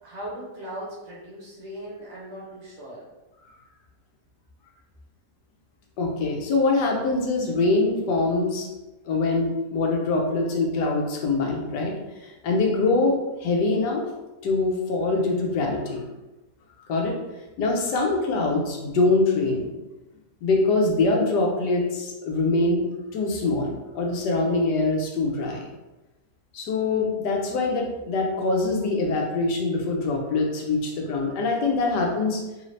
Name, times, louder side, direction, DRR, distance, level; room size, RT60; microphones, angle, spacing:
voice 1, 0.0-3.0, right 1 dB, 50° right, -5 dB, 1.0 m, -38 dB
voice 2, 6.0-8.7 9.1-11.9 12.2-14.0 14.4-16.1 16.9-17.2 17.6-19.7 20.4-22.8 23.1-25.7 26.5-32.4, left 3 dB, 80° left, 0 dB, 1.3 m, -24 dB
3.2 x 2.7 x 3.1 m, 1.1 s
omnidirectional pair, 1.8 m